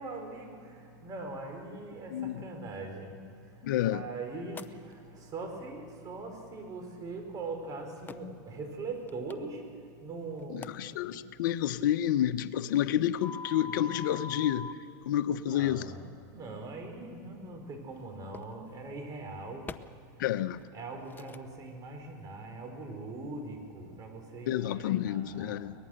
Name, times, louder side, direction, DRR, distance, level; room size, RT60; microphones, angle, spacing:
voice 1, 0.0-9.6 10.0-10.7 15.5-16.0 16.3-19.7 20.7-25.6, right 3 dB, 35° right, 4 dB, 4.9 m, -41 dB
voice 2, 3.6-4.0 10.5-14.7 15.1-15.8 20.2-20.6 24.5-25.7, left 11 dB, 80° left, 12 dB, 0.9 m, -29 dB
sound 1, 4.6-4.7 7.0-7.1 8.1-8.2 8.9-9.3 10.3-10.7 13.2-14.7 17.1-17.2 18.3-18.5 19.6-19.8 20.5-20.8 21.1-21.4, left 4 dB, 20° left, 0.7 m, -41 dB
23.0 x 19.0 x 6.6 m, 2.5 s
supercardioid pair, 120°, 10 cm